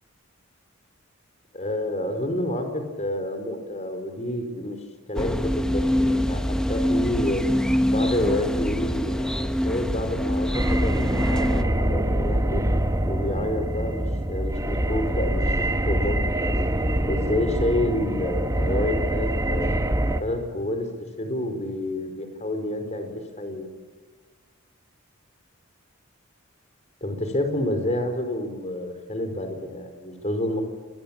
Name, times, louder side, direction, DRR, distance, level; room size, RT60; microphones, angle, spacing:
voice 1, 1.5-4.8 5.1-7.4 7.9-12.6 13.1-16.6 17.1-19.7 20.2-20.9 21.2-23.7 27.0-30.6, left 1 dB, 30° left, 7 dB, 4.5 m, -29 dB
sound 1, 5.1-11.6, equal, 5° left, 1.1 m, -24 dB
sound 2, 10.5-20.2, right 1 dB, 15° right, 1.5 m, -25 dB
28.5 x 21.0 x 8.9 m, 1.5 s
head